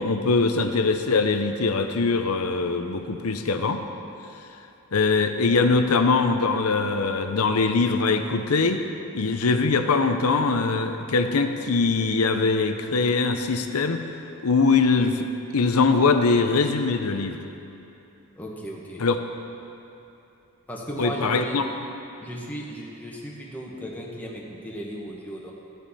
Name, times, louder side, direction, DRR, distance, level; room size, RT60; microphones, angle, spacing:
voice 1, 0.0-3.8 4.9-8.8 9.1-14.0 14.4-15.3 15.5-17.4 19.0-19.2 21.0-21.6, left 4 dB, 90° left, 7 dB, 0.7 m, -22 dB
voice 2, 18.4-19.0 20.7-21.6 22.2-25.5, right 1 dB, 10° left, -3 dB, 1.3 m, -36 dB
13.5 x 9.2 x 4.2 m, 2.8 s
head